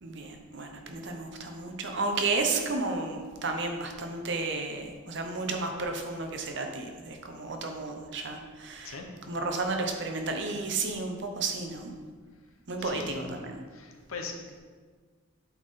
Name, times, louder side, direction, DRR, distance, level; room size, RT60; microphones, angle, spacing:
voice 1, 0.0-9.0 9.3-11.9 12.7-13.6, right 3 dB, 55° right, 3 dB, 0.8 m, -32 dB
voice 2, 12.8-13.3 13.7-14.6, left 4 dB, 80° left, 3 dB, 0.9 m, -40 dB
8.1 x 4.1 x 3.7 m, 1.5 s
head